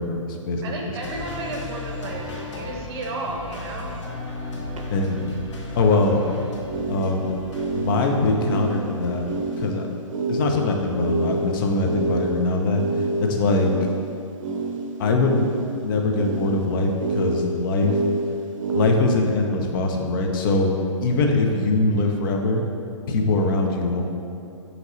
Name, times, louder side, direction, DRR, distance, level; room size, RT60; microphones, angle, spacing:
voice 1, 0.0-0.8 4.9-5.2 5.8-6.2 6.9-7.3 7.7-9.3 9.6-9.9 10.3-12.9 13.2-13.7 15.0-15.5 15.8-18.0 18.7-20.7 21.0-22.6 23.1-24.0, left 2 dB, 40° left, 2 dB, 0.5 m, -22 dB
voice 2, 0.6-4.0, right 2 dB, 50° right, 0 dB, 0.8 m, -33 dB
sound 1, 1.0-9.7, left 2 dB, 60° left, 0.9 m, -35 dB
sound 2, 3.8-3.9 4.7-4.8 6.6-18.9, right 2 dB, 75° right, 0.5 m, -28 dB
5.4 x 2.9 x 2.9 m, 2.6 s
hypercardioid pair, 130°, 17 cm